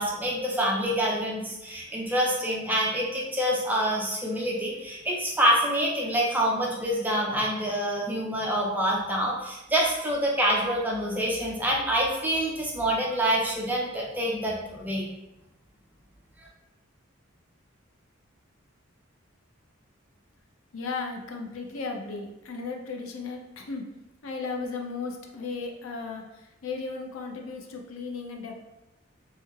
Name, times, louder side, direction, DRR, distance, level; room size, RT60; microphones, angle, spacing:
voice 1, 0.0-15.1, equal, 10° right, -3 dB, 0.5 m, -26 dB
voice 2, 20.7-23.9 24.2-28.6, left 4 dB, 85° left, 2 dB, 0.5 m, -35 dB
3.2 x 3.1 x 2.3 m, 0.95 s
head